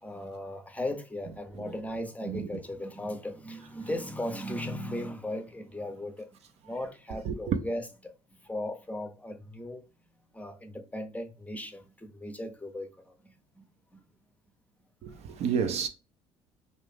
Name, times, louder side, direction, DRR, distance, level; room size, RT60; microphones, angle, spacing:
voice 1, 0.0-6.3 6.6-8.1 8.4-9.8 10.3-13.7 13.9-14.0, left 1 dB, 10° left, 0.6 m, -37 dB
voice 2, 7.3-7.6 15.0-15.9, right 7 dB, 50° right, 0.5 m, -30 dB
2.5 x 2.5 x 3.5 m
hypercardioid pair, 60°, 14 cm